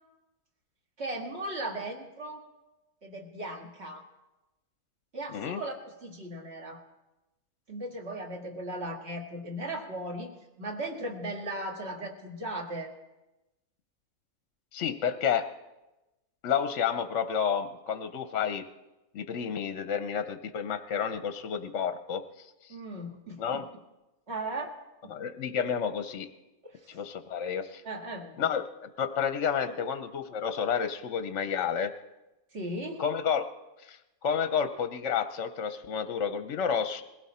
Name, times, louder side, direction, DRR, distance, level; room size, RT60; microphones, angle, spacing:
voice 1, 1.0-2.5 3.0-4.1 5.1-6.8 7.7-10.3 10.6-12.9 22.7-23.6 24.3-24.8 25.0-25.1 26.6-27.0 27.9-28.5 32.5-33.0, right 1 dB, 45° right, 2 dB, 2.0 m, -37 dB
voice 2, 14.7-15.5 16.4-18.7 19.1-22.8 23.4-23.6 25.1-26.3 26.9-27.8 28.4-31.9 33.0-33.5 33.8-37.0, left 7 dB, 60° left, 9 dB, 0.9 m, -30 dB
21.0 x 16.0 x 4.2 m, 1.0 s
omnidirectional pair, 1.5 m